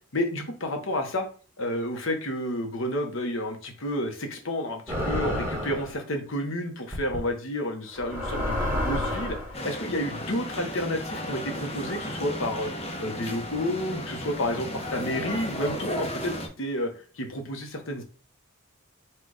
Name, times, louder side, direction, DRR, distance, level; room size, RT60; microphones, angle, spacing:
voice 1, 0.1-1.3 1.6-9.4 9.6-12.7 13.0-18.0, left 1 dB, 65° left, 4 dB, 1.0 m, -30 dB
sound 1, 4.9-5.9 6.9-7.2 7.9-9.5, left 1 dB, 10° right, 1.4 m, -29 dB
sound 2, 9.5-16.5, equal, 30° left, 0.8 m, -34 dB
4.4 x 2.4 x 4.8 m, 0.38 s
head